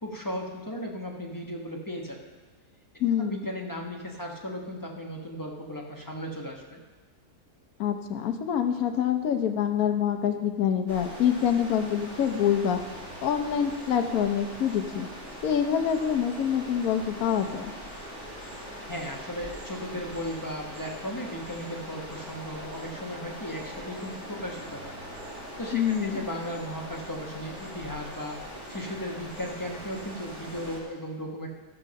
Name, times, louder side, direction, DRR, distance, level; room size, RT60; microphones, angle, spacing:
voice 1, 0.0-2.2 3.2-6.8 18.9-24.9 25.3-31.5, equal, 15° left, -1 dB, 1.0 m, -36 dB
voice 2, 3.0-3.4 7.8-12.8 13.2-15.1 15.4-17.7 25.7-26.3, left 8 dB, 65° left, 5 dB, 1.2 m, -26 dB
sound 1, 10.9-30.8, equal, 50° right, 2.6 m, -41 dB
13.5 x 5.8 x 6.4 m, 1.3 s
omnidirectional pair, 1.7 m